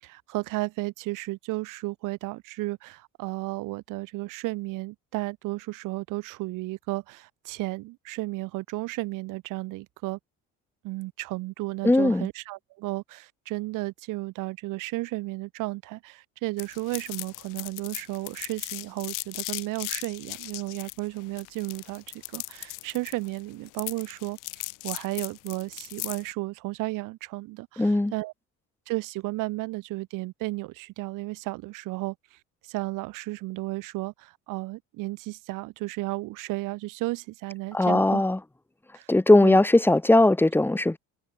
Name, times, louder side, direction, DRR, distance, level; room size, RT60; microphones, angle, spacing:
voice 1, 0.0-10.2 10.8-22.0 22.3-28.3 28.9-32.4 32.6-38.2 38.9-39.1 39.4-39.6, right 21 dB, 85° right, 8.0 m, -33 dB
voice 2, 11.8-12.3 27.8-28.1 37.7-38.4 39.1-41.0, left 2 dB, 5° left, 1.4 m, -19 dB
sound 1, 16.6-26.3, left 24 dB, 90° left, 5.3 m, -37 dB
cardioid pair, 110°, 31 cm